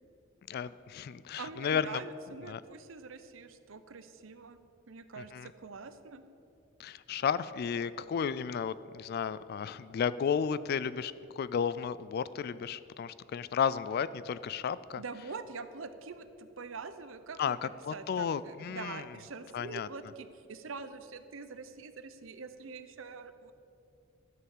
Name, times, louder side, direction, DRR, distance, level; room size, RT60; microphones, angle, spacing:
voice 1, 0.5-2.0 2.5-2.6 5.2-5.5 6.8-15.0 17.4-19.0 19.5-19.9, left 7 dB, 50° left, 16 dB, 0.3 m, -33 dB
voice 2, 1.4-4.6 4.9-6.2 15.0-23.5, right 4 dB, 70° right, 11 dB, 0.7 m, -45 dB
12.5 x 6.8 x 7.2 m, 2.6 s
head